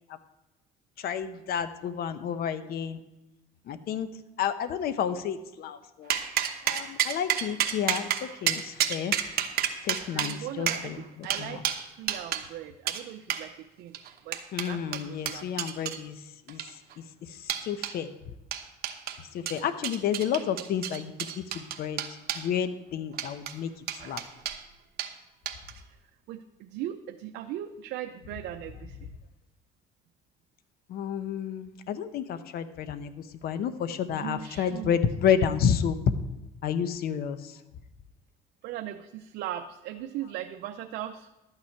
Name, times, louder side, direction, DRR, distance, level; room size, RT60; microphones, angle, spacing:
voice 1, 1.0-3.0 3.7-4.1 4.4-6.1 6.6-9.1 9.8-11.6 14.5-16.2 16.5-16.6 17.2-18.1 19.3-22.0 22.3-24.2 30.9-36.0 36.6-37.6, left 8 dB, 65° left, 12 dB, 0.8 m, -30 dB
sound 1, 6.1-12.4 12.9-13.0 13.3-13.4 13.9-16.0 16.5-16.9 17.5-17.9 18.5-19.2 19.5-22.5 23.1-23.5 23.9-24.6 25.0-25.1 25.5-25.8, right 10 dB, 65° right, 1.0 m, -30 dB
voice 2, 10.1-14.0 14.2-14.4 14.7-15.5 19.5-19.6 25.8-26.0 26.3-29.1 34.0-35.0 38.6-41.3, right 11 dB, 80° right, 5 dB, 0.6 m, -39 dB
12.5 x 8.9 x 4.6 m, 0.97 s
cardioid pair, 110°, 17 cm